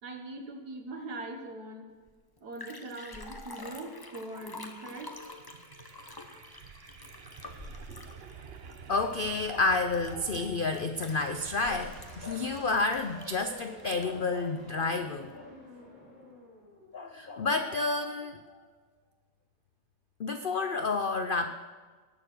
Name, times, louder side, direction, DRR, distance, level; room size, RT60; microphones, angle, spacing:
voice 1, 0.0-1.9 2.4-5.2, right 2 dB, 70° right, 4 dB, 2.0 m, -41 dB
Liquid, 2.1-2.2 2.4-14.3 14.7-14.8, left 2 dB, 20° left, 0.6 m, -47 dB
sound 1, 4.8-14.0, right 6 dB, 45° right, 0.9 m, -50 dB
voice 2, 8.9-15.5 16.9-18.4 20.2-21.5, left 3 dB, 65° left, 7 dB, 0.5 m, -30 dB
sound 2, 10.9-17.7, left 1 dB, 25° right, 2.8 m, -49 dB
19.0 x 7.0 x 6.2 m, 1.5 s
omnidirectional pair, 1.8 m